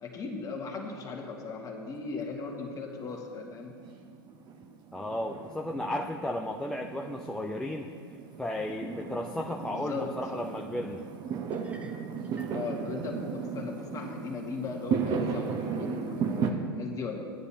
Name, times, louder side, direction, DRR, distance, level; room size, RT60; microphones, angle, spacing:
voice 1, 0.0-3.8 9.7-10.2 12.5-17.2, left 4 dB, 25° left, 1 dB, 1.8 m, -37 dB
Fireworks, 1.9-16.5, right 6 dB, 35° right, 1.0 m, -36 dB
voice 2, 4.9-7.9 8.4-11.0, left 1 dB, 5° left, 1 dB, 0.5 m, -34 dB
sound 1, 11.5-12.6, right 1 dB, 10° right, 1.0 m, -53 dB
16.0 x 9.7 x 2.8 m, 2.1 s
figure-of-eight pair, 90°, 13 cm